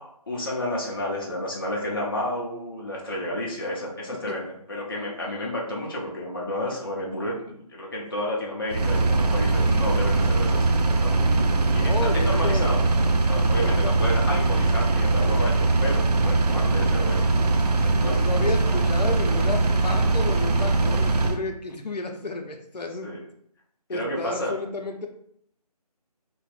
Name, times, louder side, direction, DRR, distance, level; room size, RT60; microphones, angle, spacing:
voice 1, 0.0-11.2 11.7-18.3 23.0-23.2 23.9-24.5, left 1 dB, 35° left, -2 dB, 0.5 m, -31 dB
Engine, 8.7-21.4, right 3 dB, 75° right, 0.4 m, -21 dB
voice 2, 11.2-12.7 13.6-13.9 17.9-23.1 23.9-25.1, left 2 dB, 85° left, 4 dB, 0.6 m, -32 dB
2.9 x 2.1 x 2.9 m, 0.69 s
figure-of-eight pair, 165°, 20 cm